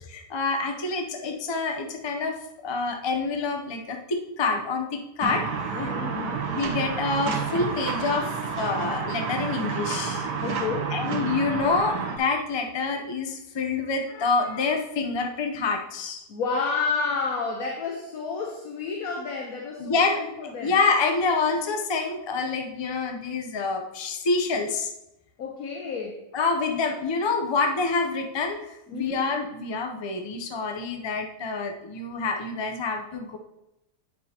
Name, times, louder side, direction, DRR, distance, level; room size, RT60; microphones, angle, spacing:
voice 1, 0.1-2.4 2.6-5.5 6.5-10.3 10.9-16.2 19.8-24.9 26.3-33.4, left 4 dB, 35° left, 4 dB, 0.4 m, -27 dB
sound 1, 5.2-12.2, right 5 dB, 80° right, 1.6 m, -30 dB
voice 2, 5.7-6.4 10.4-11.0 16.3-20.0 20.4-20.7 25.4-26.2 28.9-29.2, left 4 dB, 60° left, 0 dB, 1.3 m, -30 dB
9.9 x 7.0 x 2.9 m, 0.88 s
omnidirectional pair, 1.8 m